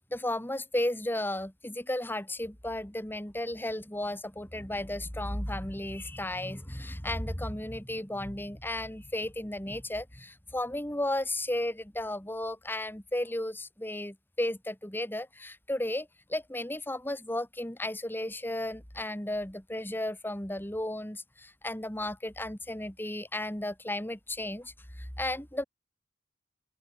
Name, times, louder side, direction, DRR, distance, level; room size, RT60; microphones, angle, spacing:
voice 1, 0.1-25.6, left 1 dB, 10° left, 2.5 m, -34 dB
open air
head